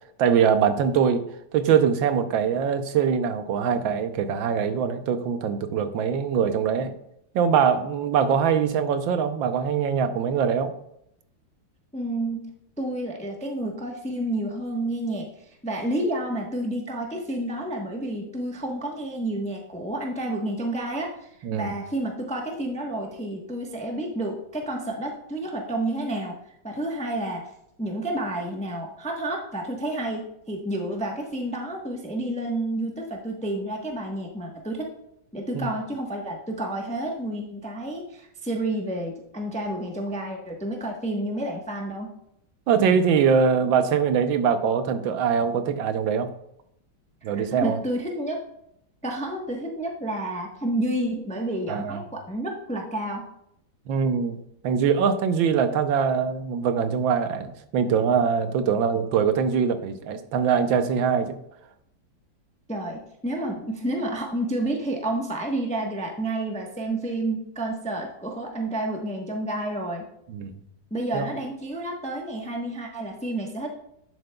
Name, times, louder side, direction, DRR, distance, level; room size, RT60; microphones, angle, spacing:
voice 1, 0.2-1.2 1.5-6.9 7.3-10.7 21.4-21.7 35.5-35.7 42.7-46.3 47.2-47.8 51.7-52.0 53.9-54.4 54.6-61.4 70.3-70.5 71.1-71.3, right 7 dB, 85° right, 9 dB, 1.5 m, -23 dB
voice 2, 11.9-12.5 12.8-15.3 15.6-26.4 26.6-27.5 27.8-34.9 35.3-42.1 47.2-48.4 49.0-53.2 62.7-70.0 70.9-73.7, right 1 dB, 5° left, 1 dB, 0.5 m, -30 dB
10.5 x 7.7 x 2.3 m, 0.76 s
omnidirectional pair, 2.1 m